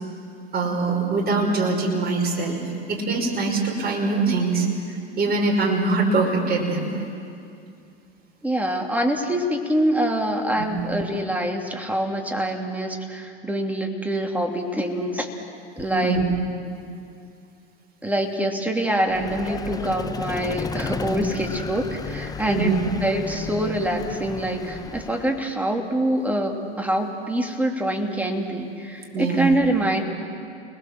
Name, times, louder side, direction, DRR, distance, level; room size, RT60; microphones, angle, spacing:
voice 1, 0.5-2.6 2.9-7.0 10.6-10.9 15.9-16.3 22.5-22.8 29.1-29.5, right 3 dB, 30° right, 1 dB, 5.8 m, -23 dB
voice 2, 8.4-15.4 15.8-16.2 18.0-22.7 23.0-30.0, right 1 dB, 5° right, 2 dB, 3.0 m, -25 dB
Vehicle, 19.1-25.5, left 4 dB, 10° left, 0.9 m, -33 dB
29.5 x 20.5 x 7.8 m, 2.4 s
hypercardioid pair, 105°, 32 cm